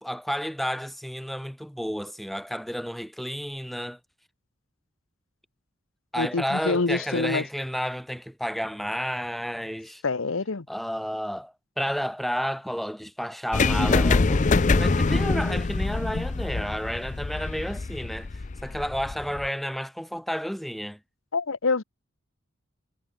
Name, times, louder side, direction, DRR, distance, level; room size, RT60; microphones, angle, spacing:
voice 1, 0.0-4.0 6.1-10.0 10.7-21.0, equal, ahead, 2.0 m, -31 dB
voice 2, 6.2-7.4 10.0-10.7 21.3-21.8, left 3 dB, 90° left, 1.0 m, -26 dB
sound 1, 13.5-19.5, left 3 dB, 35° left, 0.5 m, -24 dB
head